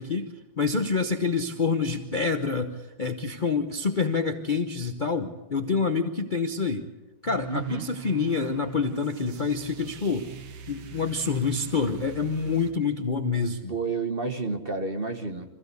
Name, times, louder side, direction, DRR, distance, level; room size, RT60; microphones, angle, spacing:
voice 1, 0.0-6.9 7.2-10.3 10.7-13.7, left 4 dB, 75° left, 6 dB, 0.4 m, -27 dB
sound 1, 7.3-12.7, right 7 dB, 75° right, 2.2 m, -43 dB
voice 2, 7.5-7.8 13.7-15.5, right 4 dB, 30° right, 6 dB, 1.1 m, -30 dB
25.5 x 15.0 x 8.3 m, 1.1 s
omnidirectional pair, 2.4 m